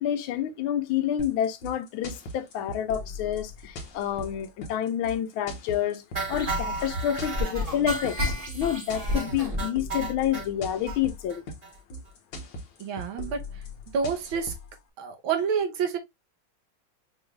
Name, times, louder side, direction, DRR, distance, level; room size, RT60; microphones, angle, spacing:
voice 1, 0.0-6.0 6.3-11.4, left 10 dB, 90° left, 1.5 m, -28 dB
sound 1, 1.2-14.8, left 2 dB, 60° left, 1.5 m, -40 dB
sound 2, 6.2-10.5 10.9-11.0 11.3-11.4 11.6-11.8 12.1-12.2, equal, 25° right, 1.5 m, -31 dB
voice 2, 12.8-13.5 13.9-14.6 15.0-16.0, right 6 dB, 80° right, 1.7 m, -28 dB
5.2 x 3.2 x 2.3 m
omnidirectional pair, 2.2 m